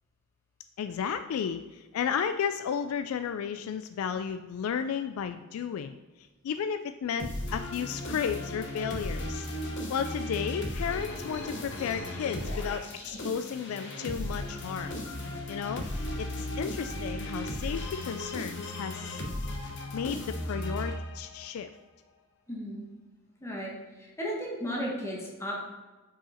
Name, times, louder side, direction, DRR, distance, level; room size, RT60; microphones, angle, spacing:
voice 1, 0.8-9.5 9.9-15.0 15.5-15.8 16.2-19.2 19.9-21.7, left 7 dB, 85° left, 10 dB, 0.3 m, -33 dB
sound 1, 7.2-21.5, left 1 dB, 60° left, 1.0 m, -36 dB
voice 2, 22.5-22.8 23.4-23.7 24.0-25.5, equal, 15° left, -3 dB, 1.2 m, -34 dB
5.7 x 4.8 x 4.2 m, 1.2 s
head